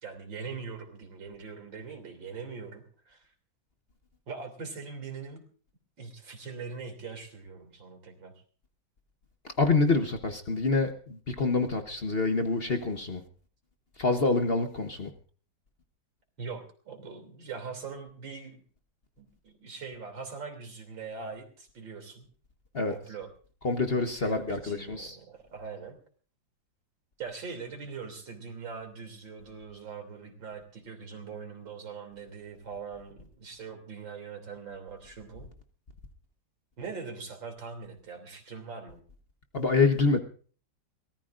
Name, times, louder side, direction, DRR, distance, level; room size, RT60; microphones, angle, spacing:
voice 1, 0.0-3.3 4.3-5.4 6.0-8.3 16.4-18.6 19.2-22.3 22.9-23.3 24.2-26.0 27.2-35.5 36.8-39.0, right 5 dB, 85° right, 4 dB, 3.7 m, -42 dB
voice 2, 9.6-13.2 14.0-15.1 22.7-22.9 23.6-25.2 39.5-40.2, left 3 dB, 40° left, 5 dB, 1.1 m, -26 dB
23.5 x 18.0 x 2.5 m, 0.42 s
omnidirectional pair, 2.0 m